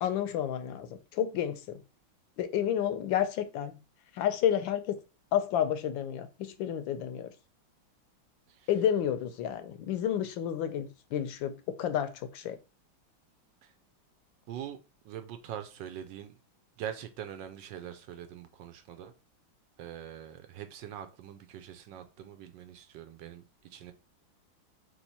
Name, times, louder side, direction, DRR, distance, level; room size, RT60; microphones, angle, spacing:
voice 1, 0.0-1.8 2.4-3.8 4.1-5.0 5.3-7.3 8.7-12.6, left 10 dB, 80° left, 1.3 m, -30 dB
voice 2, 14.5-14.8 15.0-16.4 16.8-19.1 19.8-23.4 23.7-23.9, right 10 dB, 75° right, 1.2 m, -43 dB
3.6 x 3.1 x 4.1 m
omnidirectional pair, 2.1 m